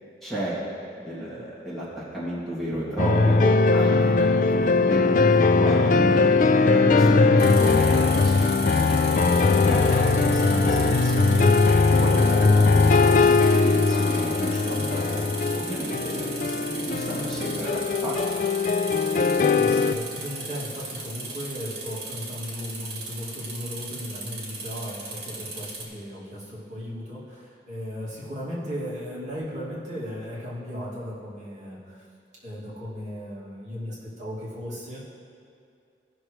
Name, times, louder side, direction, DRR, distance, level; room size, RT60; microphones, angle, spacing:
voice 1, 0.2-0.6 0.9-1.8 2.1-6.3 6.7-11.5 12.0-15.2 15.5-18.3, right 1 dB, ahead, -10 dB, 2.2 m, -32 dB
sound 1, 3.0-19.9, left 3 dB, 45° left, 0.3 m, -20 dB
sound 2, 7.4-25.8, right 3 dB, 65° right, 2.3 m, -37 dB
voice 2, 19.5-32.1 32.4-35.0, equal, 40° right, -9 dB, 2.4 m, -36 dB
17.0 x 6.3 x 3.2 m, 2.4 s
head